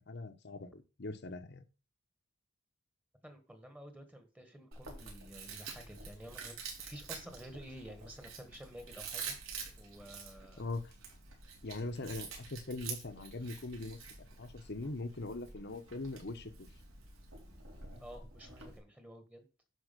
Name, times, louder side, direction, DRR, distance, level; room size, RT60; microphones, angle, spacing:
voice 1, 0.1-1.6 10.6-10.9 11.6-16.7, left 2 dB, 55° left, 10 dB, 1.0 m, -41 dB
voice 2, 3.2-6.6 6.8-9.4 9.8-10.6 18.0-19.5, equal, 5° right, 7 dB, 1.4 m, -51 dB
Chewing mastication, 4.7-18.8, right 5 dB, 80° right, 4.3 m, -48 dB
11.0 x 4.8 x 6.7 m, 0.34 s
head